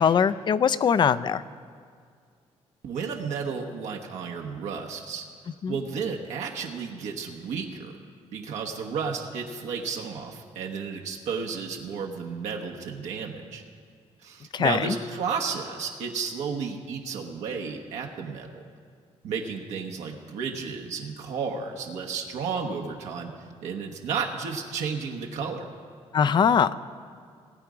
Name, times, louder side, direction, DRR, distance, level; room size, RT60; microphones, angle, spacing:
voice 1, 0.0-1.4 5.6-5.8 14.5-15.0 26.1-26.7, left 7 dB, 40° left, 15 dB, 0.4 m, -21 dB
voice 2, 2.8-5.2 5.7-7.9 8.3-13.6 14.2-18.6 19.2-23.3 23.6-25.7, right 5 dB, 85° right, 1 dB, 1.2 m, -32 dB
19.5 x 8.3 x 5.0 m, 2.1 s
cardioid pair, 100°, 12 cm